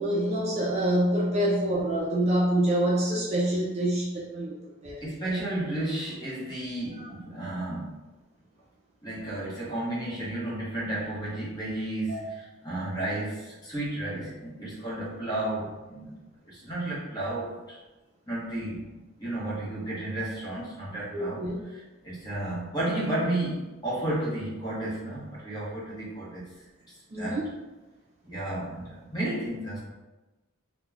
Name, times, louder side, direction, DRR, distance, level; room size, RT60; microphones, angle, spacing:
voice 1, 0.0-4.6 4.8-5.0 12.1-12.2 21.1-21.6 27.1-27.5, right 1 dB, 30° right, -3 dB, 0.3 m, -26 dB
voice 2, 5.0-8.0 9.0-16.2 16.5-17.8 18.3-21.4 21.7-26.5 26.9-27.4 28.2-29.8, right 1 dB, 20° left, -7 dB, 0.9 m, -33 dB
2.4 x 2.1 x 3.2 m, 1.1 s
head